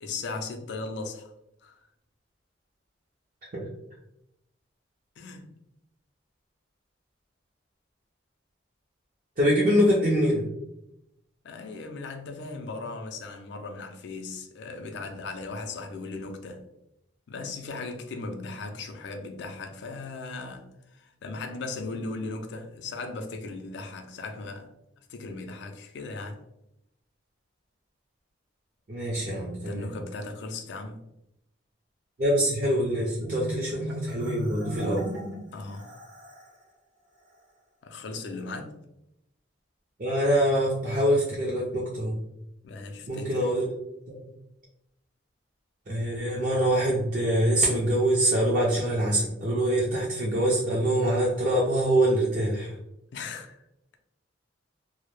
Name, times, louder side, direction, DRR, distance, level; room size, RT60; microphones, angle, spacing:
voice 1, 0.0-1.3 1.6-1.8 5.2-5.5 11.4-16.6 17.3-24.7 25.1-26.4 29.7-31.0 35.5-36.0 37.8-38.8 42.6-43.5 53.1-53.6, left 3 dB, 65° left, 0.4 m, -37 dB
voice 2, 9.4-10.4 28.9-29.9 32.2-35.1 40.0-42.2 43.1-43.7 45.9-52.7, right 1 dB, 40° right, 0.4 m, -24 dB
Marimba xylophone, 33.2-36.6, equal, 80° right, 0.7 m, -37 dB
2.1 x 2.0 x 3.0 m
head